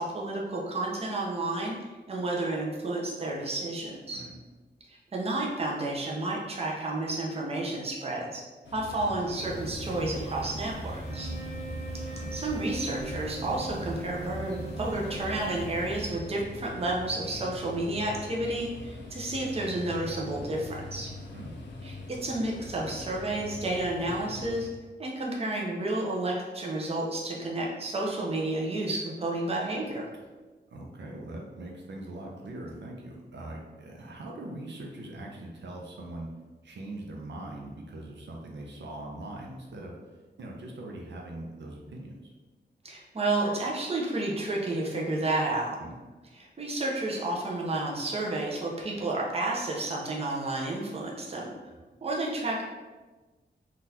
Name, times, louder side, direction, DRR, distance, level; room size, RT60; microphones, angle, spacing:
voice 1, 0.0-1.7 2.1-4.3 4.9-8.4 8.7-11.3 11.9-21.1 21.8-24.7 25.0-30.1 42.8-45.8 46.3-51.5 52.0-52.6, right 2 dB, 35° right, -2 dB, 0.6 m, -31 dB
sound 1, 8.6-24.7, left 2 dB, 85° left, 0.5 m, -43 dB
sound 2, 9.4-16.1, right 1 dB, 35° left, 0.6 m, -40 dB
sound 3, 10.9-16.3, right 3 dB, 5° right, 0.8 m, -44 dB
voice 2, 11.1-11.6 21.1-21.5 30.7-36.3 36.6-39.9 40.4-42.3 45.8-46.0 51.7-51.8, right 1 dB, 75° right, -1 dB, 0.6 m, -41 dB
3.7 x 2.4 x 2.8 m, 1.3 s
wide cardioid pair, 115°, 18 cm